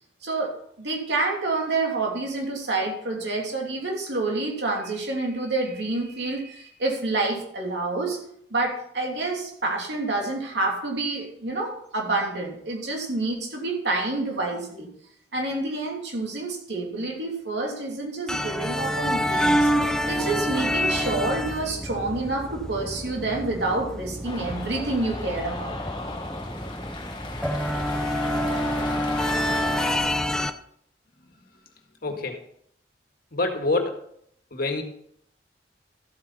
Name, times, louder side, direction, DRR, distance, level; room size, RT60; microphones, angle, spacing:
voice 1, 0.2-8.2 8.5-14.9 15.3-19.7 20.1-25.7, right 2 dB, 70° right, 0 dB, 2.9 m, -28 dB
sound 1, 18.3-30.5, equal, 5° left, 0.6 m, -27 dB
Cheering, 24.2-30.0, left 2 dB, 25° left, 1.6 m, -36 dB
voice 2, 32.0-32.4 33.3-34.0 34.5-34.8, left 2 dB, 55° left, 4 dB, 1.8 m, -26 dB
13.5 x 8.6 x 4.2 m, 0.67 s
head